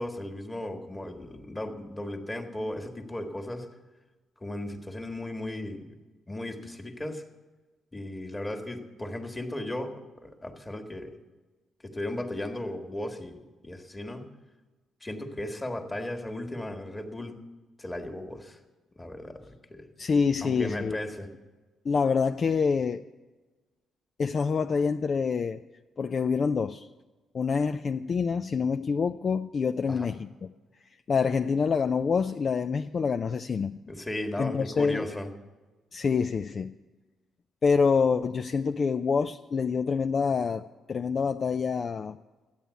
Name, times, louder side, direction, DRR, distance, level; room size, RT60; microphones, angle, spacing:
voice 1, 0.0-3.7 4.4-5.8 6.3-7.2 7.9-11.1 11.8-14.2 15.0-17.4 17.8-18.6 19.0-19.9 20.4-21.3 29.9-30.1 33.9-35.3, left 1 dB, 15° left, 5 dB, 1.7 m, -36 dB
voice 2, 20.0-21.0 21.9-23.0 24.2-25.6 26.0-26.9 27.3-30.3 31.1-33.8 34.4-35.0 35.9-36.7 37.6-42.2, left 5 dB, 45° left, 8 dB, 0.4 m, -26 dB
13.0 x 8.9 x 8.2 m, 1.2 s
cardioid pair, 90°, 0 cm